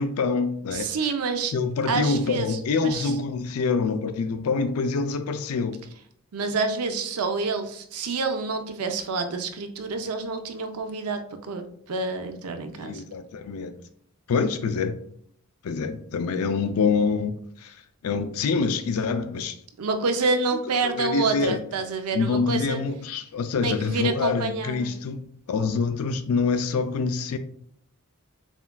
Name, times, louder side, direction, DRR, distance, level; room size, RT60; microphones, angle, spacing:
voice 1, 0.0-0.9 1.5-5.8 12.8-13.7 14.3-15.0 15.6-17.8 18.0-19.6 20.8-21.6 22.1-25.2 25.5-27.4, left 4 dB, 75° left, 0.4 m, -26 dB
voice 2, 0.7-1.5 1.9-3.2 6.3-13.0 19.8-22.8 23.6-24.9, right 4 dB, 85° right, 0.5 m, -28 dB
7.1 x 2.4 x 2.2 m
head